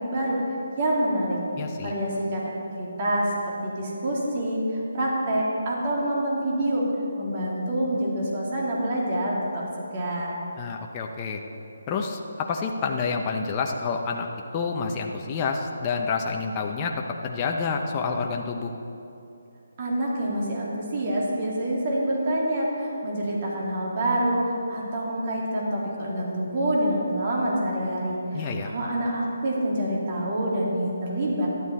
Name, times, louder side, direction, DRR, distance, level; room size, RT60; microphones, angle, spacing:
voice 1, 0.8-1.4 1.8-3.3 3.6-6.8 7.2-10.4 19.8-31.5, right 1 dB, 35° right, -4 dB, 2.5 m, -26 dB
voice 2, 1.6-1.9 10.6-11.4 11.9-14.3 14.5-18.7 28.3-28.7, left 5 dB, 20° left, 1 dB, 0.6 m, -28 dB
12.5 x 11.0 x 4.2 m, 2.8 s
hypercardioid pair, 160°, 0 cm